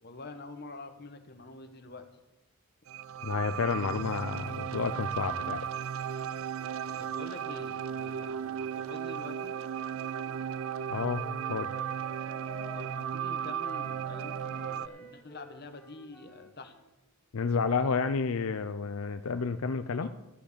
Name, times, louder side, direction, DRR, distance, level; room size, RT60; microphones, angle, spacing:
voice 1, 0.0-2.1 7.0-9.5 12.7-16.7 20.0-20.1, left 2 dB, 45° left, 7 dB, 1.2 m, -46 dB
sound 1, 2.9-14.9, right 8 dB, 65° right, 0.3 m, -35 dB
voice 2, 3.2-5.7 10.9-11.7 17.3-20.1, left 5 dB, 75° left, 10 dB, 0.5 m, -30 dB
Wind instrument woodwind instrument, 9.9-13.1 13.6-16.9, left 1 dB, 5° left, 1.4 m, -52 dB
13.5 x 7.8 x 6.7 m, 1.0 s
head